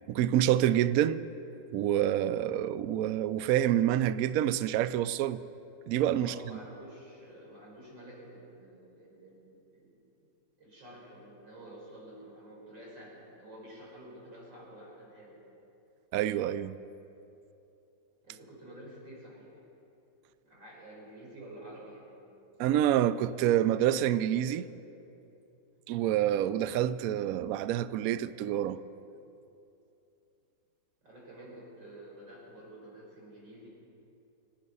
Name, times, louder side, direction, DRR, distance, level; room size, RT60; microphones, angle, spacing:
voice 1, 0.1-1.2 1.7-5.4 5.9-6.6 16.1-16.8 22.6-24.7 25.9-28.8, right 11 dB, 90° right, 0.7 m, -27 dB
voice 2, 6.2-9.9 10.6-15.4 18.2-19.6 20.4-22.2 31.0-33.7, right 1 dB, 70° right, 5.5 m, -50 dB
25.0 x 9.5 x 5.5 m
omnidirectional pair, 2.1 m